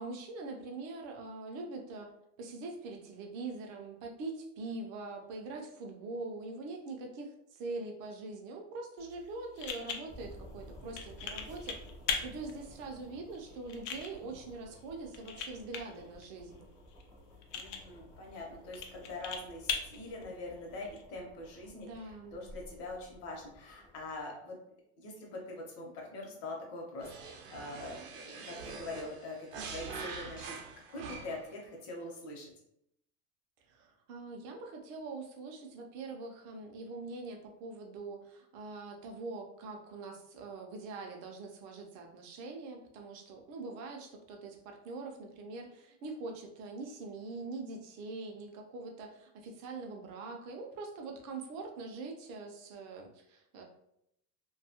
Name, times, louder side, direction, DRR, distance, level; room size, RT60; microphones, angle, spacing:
voice 1, 0.0-2.1 2.4-11.8 12.2-16.7 21.8-22.4 33.7-53.6, right 3 dB, 45° right, 2 dB, 0.5 m, -43 dB
sound 1, 9.0-21.0, left 6 dB, 80° left, 0.6 m, -42 dB
sound 2, 10.1-24.2, equal, 10° left, 0.3 m, -54 dB
voice 2, 17.5-24.6 25.0-30.6 30.9-32.5, left 2 dB, 40° left, -1 dB, 0.8 m, -44 dB
sound 3, 27.0-31.6, right 5 dB, 85° right, 0.7 m, -44 dB
2.6 x 2.3 x 2.8 m, 0.77 s
cardioid pair, 170°, 37 cm